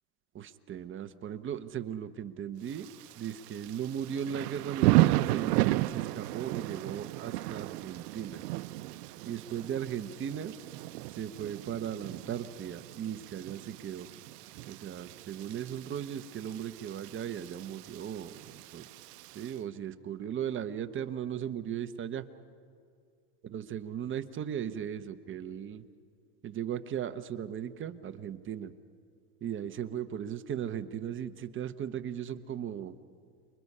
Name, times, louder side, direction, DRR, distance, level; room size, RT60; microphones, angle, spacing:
voice 1, 0.3-2.9 3.1-8.4 9.3-10.5 11.1-14.1 14.7-18.9 19.3-22.2 23.5-25.8 26.4-28.7 29.4-32.9, right 9 dB, 25° right, 9 dB, 0.9 m, -37 dB
Thunder / Rain, 2.7-19.5, right 18 dB, 80° right, 0.8 m, -34 dB
29.0 x 22.5 x 5.6 m, 2.2 s
supercardioid pair, 130°, 47 cm